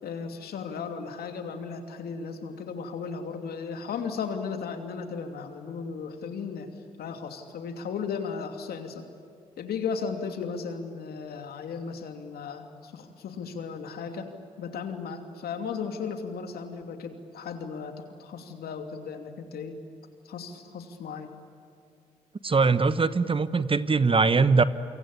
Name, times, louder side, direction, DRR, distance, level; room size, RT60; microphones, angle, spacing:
voice 1, 0.0-6.7 7.0-9.0 9.6-14.3 14.6-19.8 20.2-21.3, left 5 dB, 65° left, 6 dB, 2.8 m, -35 dB
voice 2, 22.4-24.6, right 4 dB, 30° right, 14 dB, 1.2 m, -21 dB
27.5 x 23.5 x 8.6 m, 2.5 s
hypercardioid pair, 45°, 17 cm